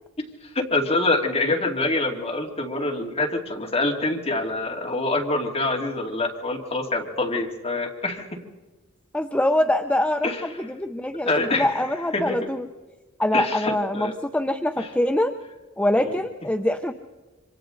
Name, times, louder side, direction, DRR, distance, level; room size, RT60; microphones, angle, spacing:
voice 1, 0.5-8.3 10.2-10.4 11.2-11.8 12.1-12.4 13.3-14.1 14.8-14.9 16.0-16.2, left 2 dB, 30° left, 0 dB, 2.5 m, -25 dB
voice 2, 9.1-12.7 13.2-15.3 15.8-16.9, left 1 dB, 5° left, 6 dB, 0.6 m, -24 dB
27.0 x 25.0 x 3.9 m, 1.2 s
head